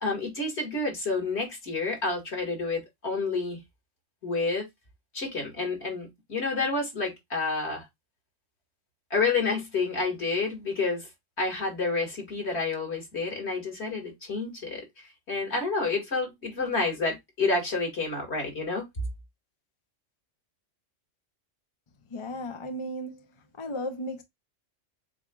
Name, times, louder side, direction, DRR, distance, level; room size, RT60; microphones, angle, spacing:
voice 1, 0.0-3.6 4.2-4.7 5.1-7.9 9.1-11.1 11.4-18.8, left 3 dB, 55° left, 2.2 m, -29 dB
voice 2, 22.1-23.3 23.6-24.2, equal, 35° left, 0.5 m, -35 dB
7.5 x 2.5 x 2.3 m
omnidirectional pair, 1.3 m